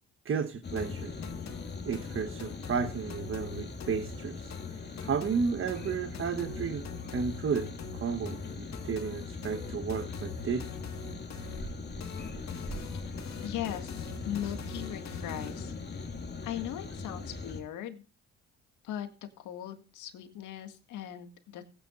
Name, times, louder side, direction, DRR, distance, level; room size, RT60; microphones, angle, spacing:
voice 1, 0.2-1.1 1.8-4.5 5.0-6.8 7.1-7.7 8.0-10.7, right 6 dB, 45° right, 8 dB, 1.2 m, -32 dB
sound 1, 0.6-17.6, left 4 dB, 35° left, 2.2 m, -40 dB
sound 2, 0.8-15.8, left 6 dB, 60° left, 2.0 m, -45 dB
voice 2, 12.9-16.1 16.4-18.0 18.8-19.1 19.4-21.6, left 11 dB, 75° left, 7 dB, 1.9 m, -39 dB
17.0 x 9.6 x 2.5 m, 0.32 s
supercardioid pair, 65°, 31 cm